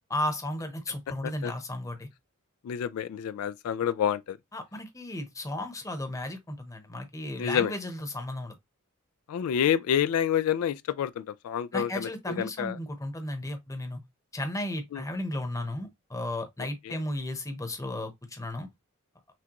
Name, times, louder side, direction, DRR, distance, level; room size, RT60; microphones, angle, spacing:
voice 1, 0.1-2.1 4.5-8.6 11.7-14.0 14.3-18.7, left 1 dB, 15° left, 0.8 m, -34 dB
voice 2, 2.6-4.4 7.4-7.7 9.3-12.8 14.9-15.0 16.8-17.0, left 9 dB, 85° left, 0.3 m, -28 dB
6.0 x 2.3 x 2.9 m
head